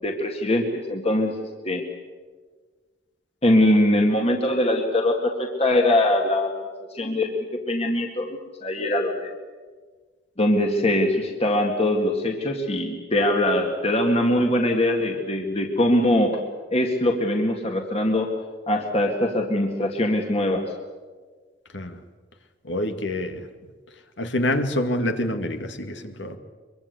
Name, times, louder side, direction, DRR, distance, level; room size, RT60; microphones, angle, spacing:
voice 1, 0.0-1.4 1.6-1.9 3.4-6.5 6.9-7.3 7.7-9.3 10.4-16.4 16.7-18.3 18.7-20.6, left 1 dB, 35° left, 2 dB, 2.1 m, -22 dB
voice 2, 22.7-23.4 24.2-26.4, left 1 dB, 75° left, 7 dB, 2.2 m, -26 dB
24.0 x 23.5 x 8.3 m, 1.5 s
head